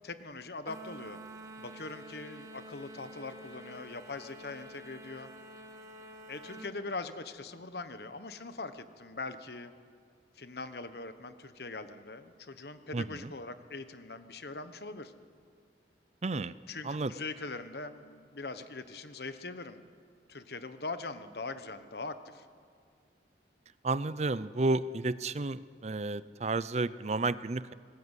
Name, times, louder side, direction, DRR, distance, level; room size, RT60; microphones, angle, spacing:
voice 1, 0.0-1.2 1.6-5.3 6.3-9.7 10.4-15.1 16.7-19.8 20.3-22.5, left 3 dB, 60° left, 10 dB, 1.2 m, -42 dB
sound 1, 0.7-6.7, right 1 dB, 20° right, 1.9 m, -48 dB
voice 2, 12.9-13.3 16.2-16.5 16.8-17.1 23.8-27.7, right 3 dB, 40° right, 16 dB, 0.5 m, -32 dB
25.5 x 19.5 x 8.3 m, 2.1 s
head